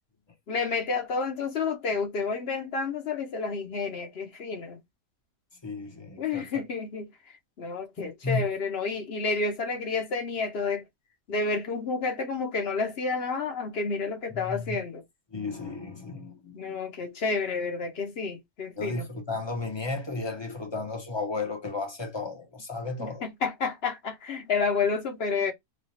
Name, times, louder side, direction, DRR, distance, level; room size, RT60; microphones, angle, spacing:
voice 1, 0.5-4.8 6.2-7.1 7.6-10.8 11.3-15.0 16.5-19.1 23.0-25.5, left 4 dB, 55° left, 0.8 m, -30 dB
voice 2, 5.6-6.5 8.0-8.5 14.3-14.8 15.3-16.8 18.8-23.3, left 3 dB, 25° left, 0.6 m, -34 dB
3.2 x 2.3 x 4.0 m
omnidirectional pair, 1.6 m